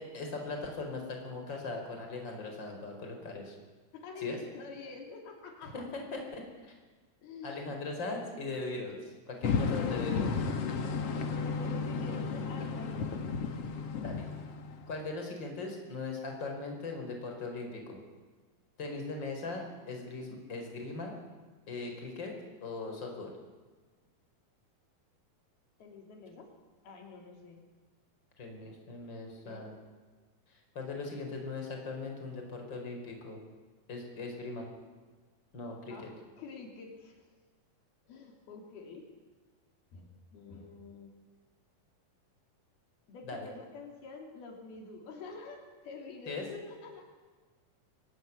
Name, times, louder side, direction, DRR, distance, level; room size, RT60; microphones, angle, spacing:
voice 1, 0.0-3.6 4.2-4.4 5.7-6.7 7.4-10.3 14.0-14.3 14.9-18.0 18.8-21.1 21.7-22.3 22.6-23.3 28.4-29.7 30.5-33.4 33.9-34.7 35.5-36.0 43.2-43.4 46.3-46.4, left 3 dB, 30° left, 2 dB, 5.3 m, -39 dB
voice 2, 3.9-5.9 7.2-7.8 9.8-13.2 25.8-26.5 26.8-27.6 29.3-29.7 35.9-37.2 38.1-39.1 39.9-41.1 43.1-47.0, left 4 dB, 80° left, 2 dB, 5.0 m, -47 dB
sound 1, 9.4-15.1, left 5 dB, 50° left, 2.2 m, -33 dB
24.5 x 19.0 x 9.8 m, 1.3 s
omnidirectional pair, 4.4 m